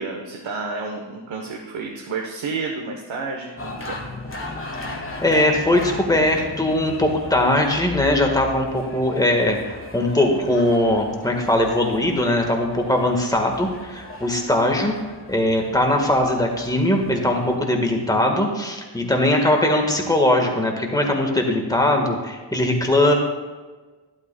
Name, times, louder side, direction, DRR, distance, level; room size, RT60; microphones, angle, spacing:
voice 1, 0.0-4.0, right 4 dB, 75° right, 0 dB, 1.2 m, -30 dB
sound 1, 3.6-17.6, left 2 dB, 25° left, 1.3 m, -37 dB
voice 2, 4.9-14.9 15.3-23.1, left 1 dB, 10° left, 2 dB, 1.5 m, -20 dB
12.0 x 11.5 x 2.3 m, 1.3 s
wide cardioid pair, 100°, 46 cm